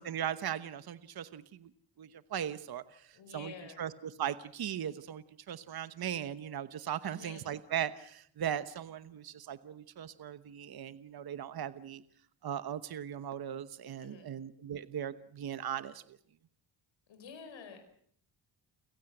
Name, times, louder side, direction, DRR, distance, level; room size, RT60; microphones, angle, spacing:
voice 1, 0.0-1.7 2.0-12.0 12.4-16.2, right 9 dB, 50° right, 13 dB, 1.1 m, -38 dB
voice 2, 3.1-3.8 7.0-7.4 14.0-14.3 17.1-17.8, left 5 dB, 70° left, 6 dB, 5.4 m, -49 dB
30.0 x 16.0 x 7.9 m, 0.65 s
cardioid pair, 110°, 46 cm